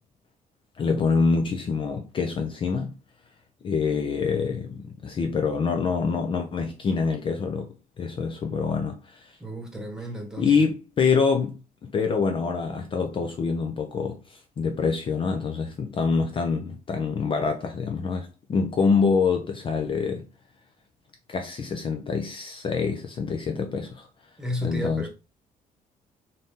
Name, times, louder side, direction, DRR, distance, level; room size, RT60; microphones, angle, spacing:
voice 1, 0.8-2.9 3.6-7.7 8.0-9.4 10.4-20.3 21.3-24.1 24.6-25.1, left 5 dB, 35° left, 0.5 m, -26 dB
voice 2, 9.4-10.5 24.4-25.1, equal, 5° right, 1.3 m, -32 dB
3.8 x 2.8 x 3.6 m
cardioid pair, 110°, 14 cm